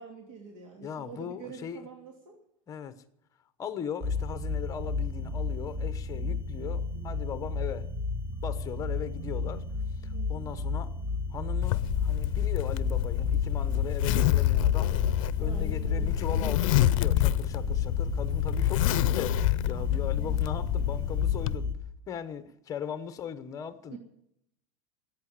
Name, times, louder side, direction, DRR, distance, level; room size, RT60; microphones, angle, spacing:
voice 1, 0.0-2.4 10.1-10.5 15.4-16.2 23.9-24.0, right 6 dB, 75° right, 2.9 m, -45 dB
voice 2, 0.8-1.9 2.7-2.9 3.6-7.9 8.4-9.6 10.0-10.9 11.3-15.0 15.4-19.3 19.7-21.7 22.1-24.0, left 8 dB, 20° left, 0.9 m, -38 dB
sound 1, 4.0-21.7, left 3 dB, 15° right, 1.1 m, -32 dB
Zipper (clothing), 11.6-21.6, left 14 dB, 85° left, 0.5 m, -28 dB
16.5 x 8.7 x 9.9 m
supercardioid pair, 175°, 17 cm